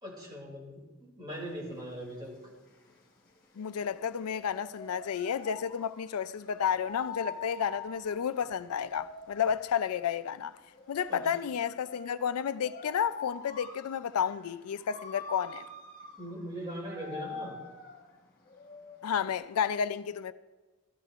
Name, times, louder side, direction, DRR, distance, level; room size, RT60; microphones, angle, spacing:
voice 1, 0.0-2.4 11.1-11.3 16.2-17.6, equal, 20° right, 2.7 m, -40 dB
sound 1, 1.3-19.4, left 4 dB, 45° left, 1.3 m, -46 dB
voice 2, 3.6-10.5 10.9-15.6 19.0-20.3, left 7 dB, 85° left, 0.4 m, -31 dB
15.0 x 11.5 x 2.5 m
head